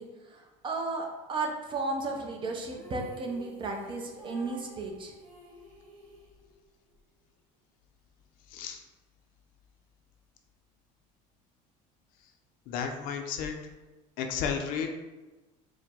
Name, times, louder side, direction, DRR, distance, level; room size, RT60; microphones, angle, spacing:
voice 1, 0.0-5.1, right 3 dB, 30° right, 2 dB, 0.6 m, -34 dB
sound 1, 2.7-7.0, equal, 90° right, 0.9 m, -51 dB
voice 2, 8.5-8.8 12.7-13.6 14.2-14.9, left 7 dB, 60° left, 4 dB, 0.5 m, -32 dB
4.6 x 2.1 x 3.6 m, 1.1 s
cardioid pair, 130°, 16 cm